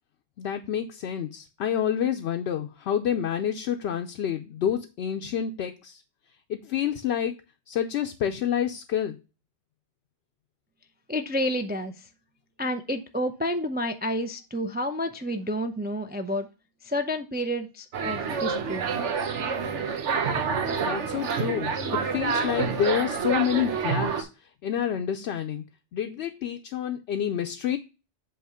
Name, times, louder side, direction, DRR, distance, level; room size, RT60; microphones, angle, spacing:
voice 1, 0.4-6.0 6.5-7.3 7.7-9.2 20.8-21.7 22.1-24.3 24.6-25.6 25.9-27.8, left 9 dB, 70° left, 0.8 m, -28 dB
voice 2, 11.1-11.9 12.6-16.5 16.8-18.9, equal, 15° right, 0.3 m, -29 dB
sound 1, 17.9-24.2, right 5 dB, 85° right, 1.2 m, -28 dB
7.9 x 2.9 x 4.9 m
omnidirectional pair, 1.2 m